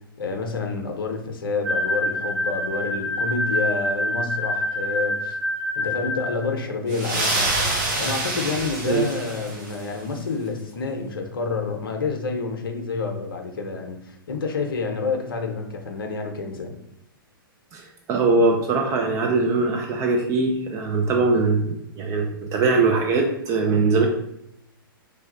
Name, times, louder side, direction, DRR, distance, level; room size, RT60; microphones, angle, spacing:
voice 1, 0.2-5.4 5.8-7.6 8.0-16.8, left 4 dB, 70° left, 3 dB, 0.6 m, -28 dB
sound 1, 1.6-6.5, left 1 dB, 70° right, 1.3 m, -26 dB
sound 2, 6.9-9.9, right 2 dB, 50° right, 1.0 m, -26 dB
voice 2, 17.7-24.1, right 3 dB, 25° right, 2 dB, 0.4 m, -21 dB
3.2 x 2.3 x 3.8 m, 0.78 s
figure-of-eight pair, 115°, 12 cm